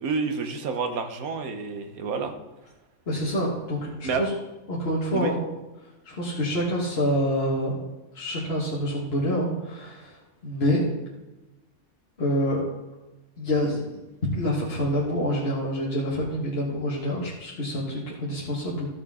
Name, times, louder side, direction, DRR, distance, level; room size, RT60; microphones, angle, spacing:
voice 1, 0.0-2.4 4.0-4.2 5.1-5.3, right 4 dB, 80° right, 7 dB, 1.4 m, -29 dB
voice 2, 3.1-4.3 4.7-5.4 6.0-7.8 8.1-10.1 10.4-10.9 12.2-12.6 13.4-14.0 14.3-18.9, equal, 45° left, -6 dB, 1.9 m, -27 dB
13.0 x 6.9 x 3.7 m, 1.0 s
omnidirectional pair, 1.5 m